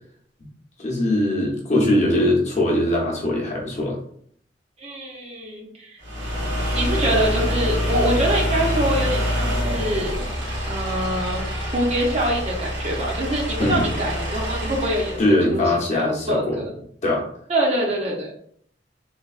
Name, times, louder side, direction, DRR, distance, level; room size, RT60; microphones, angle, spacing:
voice 1, 0.8-4.0 13.6-13.9 15.2-16.6 17.0-17.2, left 1 dB, 40° left, -2 dB, 0.8 m, -21 dB
voice 2, 4.8-6.0 6.7-10.2 10.7-11.4 11.7-15.6 15.9-16.7 17.5-18.3, right 1 dB, 35° right, -1 dB, 0.6 m, -25 dB
sound 1, 6.0-15.3, equal, 85° right, 1.2 m, -26 dB
3.3 x 2.3 x 2.4 m, 0.63 s
head